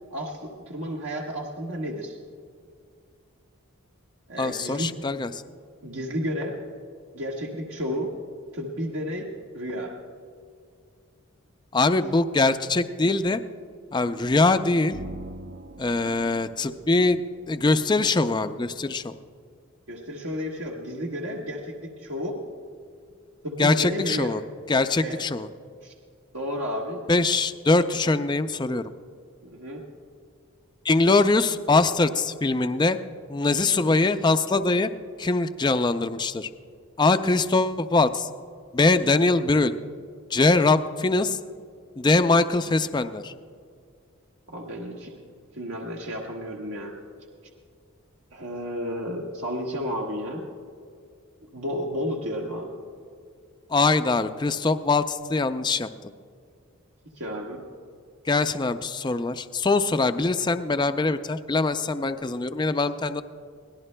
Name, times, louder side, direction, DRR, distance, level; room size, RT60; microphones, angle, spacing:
voice 1, 0.1-2.2 4.3-4.9 5.8-6.6 7.1-8.1 8.5-9.3 9.5-9.9 19.9-22.4 23.4-24.4 25.0-25.2 25.8-25.9 26.3-27.0 29.4-29.8 44.5-45.1 45.5-46.9 48.3-50.5 51.5-52.7 57.1-57.6, equal, 75° right, -2 dB, 1.4 m, -32 dB
voice 2, 4.4-5.4 11.7-13.4 13.9-15.0 15.8-19.1 23.6-24.4 24.7-25.5 27.1-28.9 30.8-33.0 33.3-34.9 35.2-36.5 37.0-38.3 38.7-39.7 40.3-41.4 42.0-43.3 53.7-55.9 58.3-63.2, left 3 dB, 20° left, 10 dB, 0.4 m, -22 dB
sound 1, 13.9-18.8, right 2 dB, 45° right, 0.5 m, -44 dB
23.5 x 18.0 x 2.2 m, 2.2 s
head